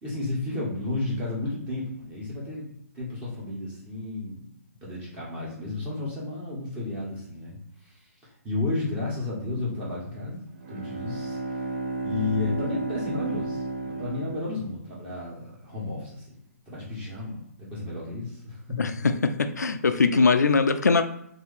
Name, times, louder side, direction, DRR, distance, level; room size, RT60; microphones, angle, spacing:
voice 1, 0.0-4.4 4.8-8.1 8.4-11.4 12.0-16.4 16.7-18.8, left 2 dB, 15° right, -7 dB, 1.2 m, -32 dB
Bowed string instrument, 10.5-15.2, right 3 dB, 45° right, 0.6 m, -33 dB
voice 2, 18.8-21.0, left 4 dB, 80° left, 9 dB, 0.4 m, -21 dB
2.7 x 2.7 x 4.0 m, 0.76 s
figure-of-eight pair, 140°, 9 cm